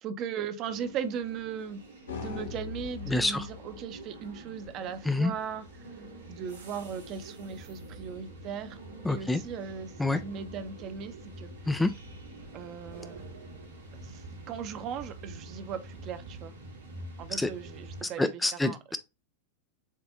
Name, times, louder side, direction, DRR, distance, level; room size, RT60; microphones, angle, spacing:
voice 1, 0.0-1.8 2.1-5.6 6.3-8.8 9.1-11.5 12.5-13.2 13.9-16.5 17.2-18.8, right 7 dB, 35° right, 0.7 m, -38 dB
sound 1, 0.7-18.0, right 2 dB, 70° right, 1.5 m, -47 dB
sound 2, 2.1-15.2, left 5 dB, 65° left, 0.9 m, -47 dB
voice 2, 3.1-3.5 5.1-5.3 9.0-9.4 10.0-10.2 11.7-11.9 17.4-17.5 18.0-19.0, left 2 dB, 5° left, 0.3 m, -27 dB
7.3 x 2.5 x 2.5 m
figure-of-eight pair, 90°, 0 cm